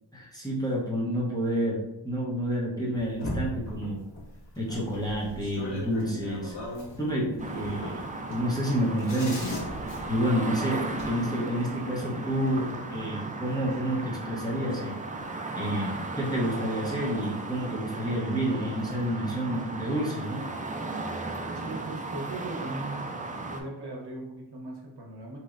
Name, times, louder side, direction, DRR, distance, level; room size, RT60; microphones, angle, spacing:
voice 1, 0.1-4.1 4.6-6.6 7.0-9.6 10.1-15.0 15.6-20.5, equal, 10° left, -5 dB, 0.8 m, -29 dB
sound 1, 2.9-11.1 12.9-13.0 13.4-14.1 14.6-15.2, left 1 dB, 70° left, 1.4 m, -39 dB
sound 2, 7.4-23.6, right 3 dB, 20° right, 0.3 m, -36 dB
voice 2, 21.5-23.1 23.5-25.4, right 2 dB, 60° right, -1 dB, 0.9 m, -38 dB
4.1 x 3.1 x 2.5 m, 0.95 s
wide cardioid pair, 105°, 44 cm